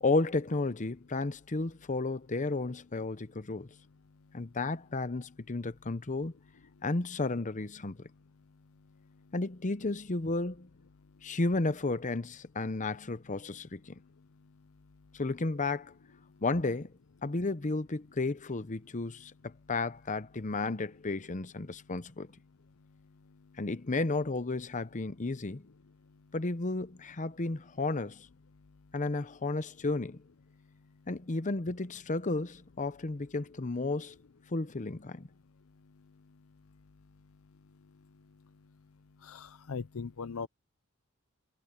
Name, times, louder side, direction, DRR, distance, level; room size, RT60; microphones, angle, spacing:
voice 1, 0.0-3.7 4.3-6.3 6.8-8.1 9.3-10.7 11.2-14.0 15.1-15.9 16.4-16.9 17.2-19.3 19.7-22.3 23.6-25.7 26.3-28.3 28.9-30.2 31.1-34.2 34.5-35.3, left 3 dB, 35° left, 0.8 m, -33 dB
voice 2, 39.3-40.5, left 5 dB, 75° left, 0.6 m, -39 dB
head